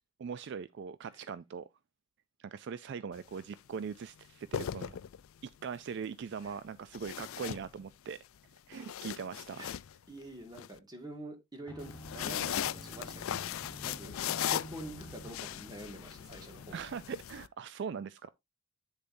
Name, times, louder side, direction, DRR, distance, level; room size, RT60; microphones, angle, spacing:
voice 1, 0.2-1.7 2.4-5.0 5.4-8.2 8.7-9.6 16.7-18.3, right 6 dB, 55° right, 0.3 m, -41 dB
sound 1, 3.1-3.4 4.3-5.5 6.9-8.2 8.6-10.7 11.8-17.5, left 10 dB, 75° left, 0.4 m, -38 dB
voice 2, 10.1-14.2 14.5-16.9, right 1 dB, 20° right, 1.9 m, -47 dB
sound 2, 11.7-16.8, right 1 dB, 10° left, 1.3 m, -50 dB
9.0 x 6.9 x 2.6 m
head